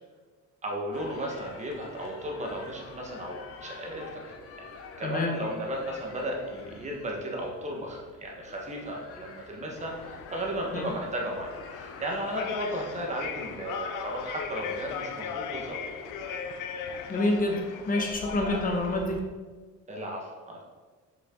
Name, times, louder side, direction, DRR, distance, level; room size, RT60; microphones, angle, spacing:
voice 1, 0.6-4.0 4.6-4.7 5.0-9.9 10.3-15.8 19.9-20.6, right 1 dB, 20° right, -1 dB, 1.4 m, -35 dB
sound 1, 0.9-17.6, left 4 dB, 45° left, 0.9 m, -48 dB
voice 2, 5.0-5.4 10.7-10.9 17.1-19.2, left 2 dB, 25° left, 2 dB, 1.1 m, -27 dB
sound 2, 9.8-19.2, left 7 dB, 80° left, 0.9 m, -38 dB
7.4 x 6.7 x 3.8 m, 1.4 s
cardioid pair, 180°, 31 cm